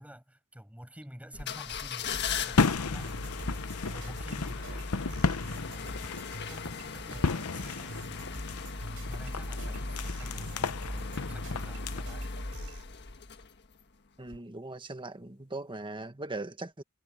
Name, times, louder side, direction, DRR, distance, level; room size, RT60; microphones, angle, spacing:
voice 1, 0.0-8.6 9.1-12.7, equal, 5° right, 7.2 m, -50 dB
sound 1, 1.3-13.8 14.3-14.4, left 4 dB, 50° left, 1.5 m, -38 dB
sound 2, 2.4-12.0, left 4 dB, 85° left, 0.9 m, -34 dB
sound 3, 2.9-12.8, right 1 dB, 70° right, 5.2 m, -46 dB
voice 2, 14.2-16.8, right 2 dB, 25° right, 1.5 m, -39 dB
head